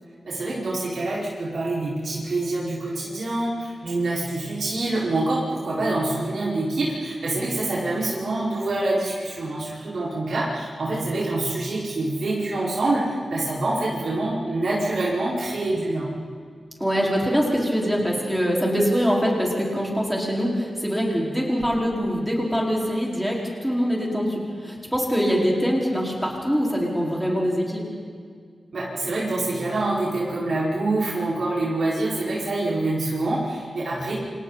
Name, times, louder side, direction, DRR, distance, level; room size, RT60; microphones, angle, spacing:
voice 1, 0.2-16.1 28.7-34.1, right 2 dB, 65° right, -7 dB, 5.1 m, -26 dB
voice 2, 16.8-27.9, equal, ahead, -3 dB, 4.9 m, -23 dB
29.5 x 27.0 x 4.2 m, 2.1 s
wide cardioid pair, 145°, 0 cm